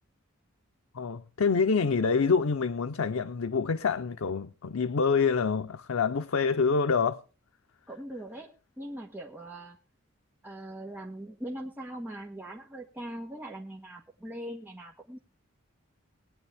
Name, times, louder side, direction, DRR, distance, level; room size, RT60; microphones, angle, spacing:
voice 1, 0.9-7.2, left 5 dB, 90° left, 0.6 m, -26 dB
voice 2, 7.9-8.5 8.8-9.8 10.4-15.2, right 1 dB, 10° right, 1.4 m, -41 dB
19.5 x 9.9 x 3.4 m
head